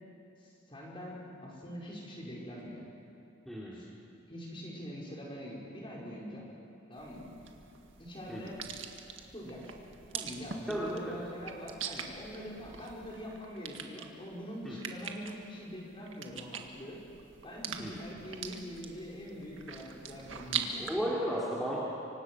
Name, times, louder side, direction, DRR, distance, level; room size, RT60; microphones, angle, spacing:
voice 1, 0.4-2.8 3.7-3.9 4.3-6.5 6.9-7.3 8.0-8.6 9.3-9.8 10.1-17.0 17.4-20.9, equal, 25° left, -4 dB, 5.5 m, -44 dB
voice 2, 3.5-3.8 8.3-8.4 10.7-11.2 14.6-14.8 17.8-17.9 20.7-21.8, equal, ahead, -7 dB, 3.0 m, -34 dB
sound 1, 7.0-20.9, right 7 dB, 85° right, 1.9 m, -43 dB
26.0 x 24.5 x 6.4 m, 2.7 s
head